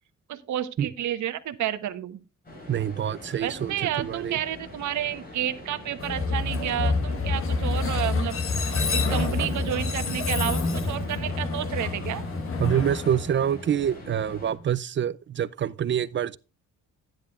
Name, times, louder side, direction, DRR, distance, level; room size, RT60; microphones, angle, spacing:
voice 1, 0.3-2.2 3.4-8.3 8.9-12.2, right 11 dB, 75° right, 1.1 m, -30 dB
sound 1, 2.4-14.5, left 1 dB, 30° left, 5.1 m, -43 dB
voice 2, 2.7-4.4 9.4-9.5 12.6-16.4, right 9 dB, 40° right, 0.4 m, -26 dB
Train, 6.0-14.0, left 3 dB, 45° left, 1.4 m, -27 dB
12.0 x 10.5 x 2.4 m
cardioid pair, 145°, 30 cm